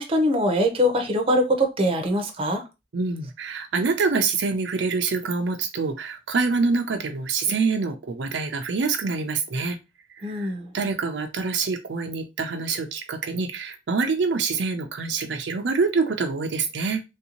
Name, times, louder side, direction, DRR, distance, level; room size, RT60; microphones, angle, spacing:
voice 1, 0.0-2.6 10.2-10.7, equal, 30° right, 4 dB, 0.7 m, -22 dB
voice 2, 2.9-9.8 10.1-17.0, right 4 dB, 75° right, 5 dB, 0.5 m, -26 dB
3.2 x 2.7 x 2.8 m, 0.26 s
head